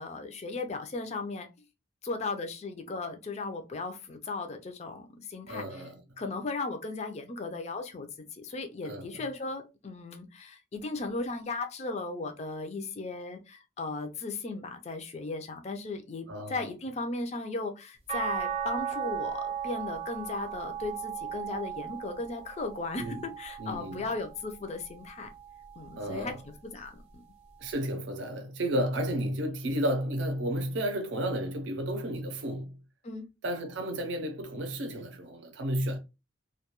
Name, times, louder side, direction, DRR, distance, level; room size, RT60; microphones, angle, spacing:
voice 1, 0.0-1.5 2.0-5.8 6.2-25.3 25.8-27.2 33.0-33.3, left 3 dB, 35° left, 0.4 m, -36 dB
voice 2, 5.5-6.0 8.8-9.3 16.3-16.7 23.0-23.3 23.6-24.1 26.0-26.4 27.6-32.8 33.4-36.0, equal, 70° right, 0.5 m, -32 dB
sound 1, 18.1-24.4 25.0-26.3 27.7-27.8, right 8 dB, 35° right, 0.7 m, -37 dB
2.2 x 2.2 x 2.9 m
head